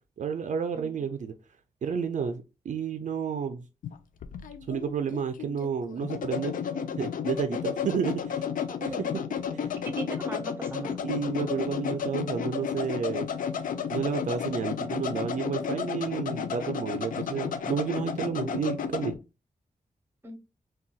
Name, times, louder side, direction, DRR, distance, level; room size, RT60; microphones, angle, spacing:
voice 1, 0.2-1.3 1.8-3.6 4.7-6.5 7.0-8.4 8.9-9.1 9.5-9.7 10.7-13.3 13.9-19.1, right 6 dB, 65° right, 0.4 m, -31 dB
sound 1, 3.8-19.2, left 7 dB, 90° left, 0.4 m, -32 dB
voice 2, 8.8-9.2 9.8-11.0 20.2-20.4, right 1 dB, 15° right, 0.7 m, -37 dB
3.8 x 2.2 x 2.3 m
wide cardioid pair, 130°, 14 cm